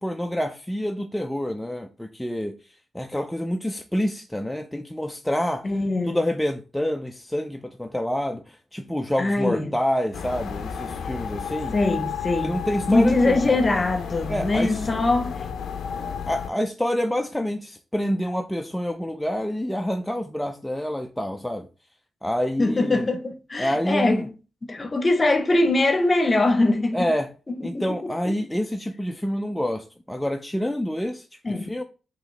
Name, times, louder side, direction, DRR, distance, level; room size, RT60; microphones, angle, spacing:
voice 1, 0.0-5.7 6.0-11.7 12.4-13.6 14.3-14.9 16.3-21.7 22.2-23.1 23.6-24.3 26.9-27.3 27.6-31.8, equal, 5° left, 0.3 m, -27 dB
voice 2, 5.6-6.2 9.2-9.7 11.7-12.6 12.9-15.4 22.6-24.3 24.7-27.1 27.7-28.3 31.4-31.7, left 2 dB, 30° left, 0.7 m, -22 dB
sound 1, 10.1-16.5, left 7 dB, 85° left, 0.5 m, -32 dB
5.2 x 2.8 x 3.2 m
wide cardioid pair, 120°, 0 cm